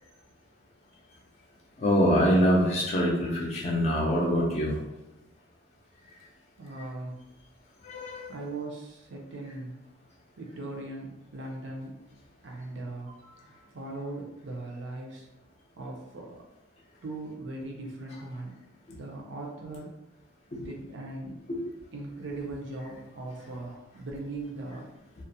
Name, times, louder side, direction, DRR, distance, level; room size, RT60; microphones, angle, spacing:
voice 1, 1.8-4.8 7.8-8.3 21.5-21.6, equal, 35° left, -3 dB, 0.4 m, -24 dB
voice 2, 6.6-7.2 8.3-9.8 10.4-12.0 12.4-15.3 15.8-16.4 17.0-18.5 18.9-20.0 20.6-21.4 21.9-24.9, right 2 dB, 65° right, 0 dB, 0.5 m, -39 dB
2.4 x 2.0 x 2.6 m, 0.98 s
head